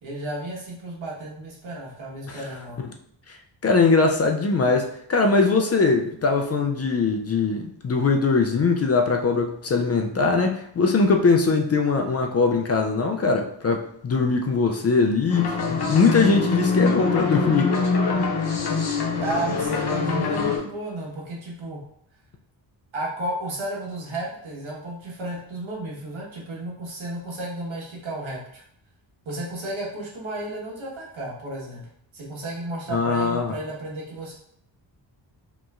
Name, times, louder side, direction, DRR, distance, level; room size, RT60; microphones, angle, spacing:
voice 1, 0.0-2.8 19.2-21.8 22.9-28.6 29.2-31.9 32.1-34.3, right 1 dB, 90° right, -4 dB, 1.4 m, -33 dB
voice 2, 3.6-17.7 32.9-33.5, left 4 dB, 35° left, 3 dB, 0.4 m, -21 dB
sound 1, 15.3-20.6, left 4 dB, 55° left, 0.8 m, -24 dB
5.1 x 3.0 x 2.4 m, 0.68 s
wide cardioid pair, 165°, 46 cm